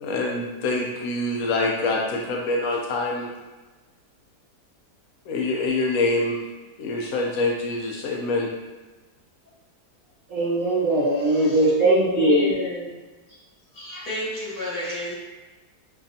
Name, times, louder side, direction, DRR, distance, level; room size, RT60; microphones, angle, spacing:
voice 1, 0.0-3.3 5.3-6.4 6.8-8.5, left 2 dB, 70° left, -1 dB, 0.8 m, -25 dB
voice 2, 10.3-12.5, right 1 dB, 65° right, -5 dB, 0.9 m, -20 dB
voice 3, 11.3-13.0 13.7-15.1, left 2 dB, 85° left, -9 dB, 2.3 m, -29 dB
5.6 x 2.3 x 2.6 m, 1.2 s
omnidirectional pair, 1.8 m